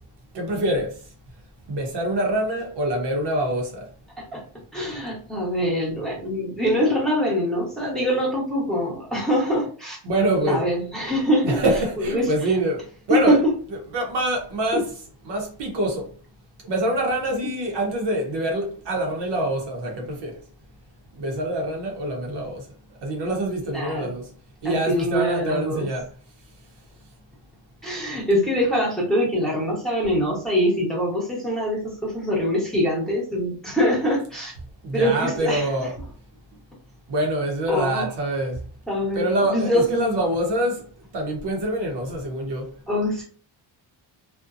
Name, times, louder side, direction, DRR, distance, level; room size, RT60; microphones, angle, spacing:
voice 1, 0.3-0.9 1.7-3.8 10.0-10.7 11.4-12.8 13.1-13.4 13.9-14.9 15.2-16.1 16.7-20.3 21.2-22.6 23.0-24.2 24.6-26.0 34.8-35.9 37.1-38.6 39.1-40.8 41.1-42.6, right 1 dB, 60° right, 0.8 m, -25 dB
voice 2, 4.7-10.0 10.4-11.6 12.0-12.5 13.3-13.5 14.7-14.8 23.6-24.1 24.6-25.9 27.8-34.5 34.9-35.9 37.7-38.1 38.9-40.1 42.9-43.2, equal, ahead, 1.0 m, -24 dB
2.5 x 2.2 x 2.5 m
cardioid pair, 125°, 47 cm